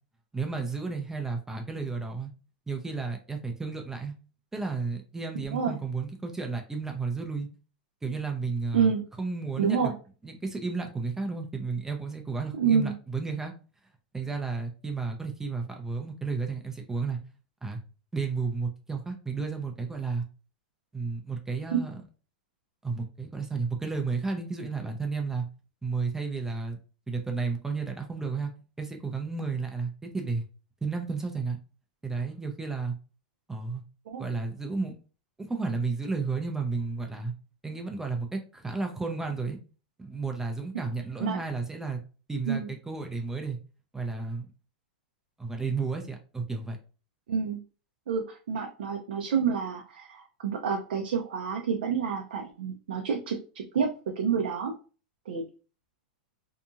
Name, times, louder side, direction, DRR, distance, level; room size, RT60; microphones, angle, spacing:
voice 1, 0.3-2.3 2.7-4.1 4.5-7.5 8.0-8.9 9.2-9.9 10.2-13.5 14.1-17.2 17.6-17.8 18.1-20.2 20.9-22.0 22.8-25.4 25.8-26.8 27.1-30.4 30.8-31.6 32.0-32.9 33.5-33.8 34.2-34.9 35.4-37.3 37.6-39.6 40.0-42.0 42.3-43.6 43.9-44.5 45.4-46.8, right 4 dB, 10° right, 3 dB, 0.5 m, -32 dB
voice 2, 9.6-9.9 12.6-12.9 21.7-21.8 34.1-34.2 41.2-41.4 42.5-42.7 47.3-47.6 48.1-53.9 54.2-54.7 55.3-55.4, right 6 dB, 75° right, 2 dB, 0.5 m, -28 dB
2.8 x 2.6 x 2.3 m, 0.36 s
hypercardioid pair, 120°, 5 cm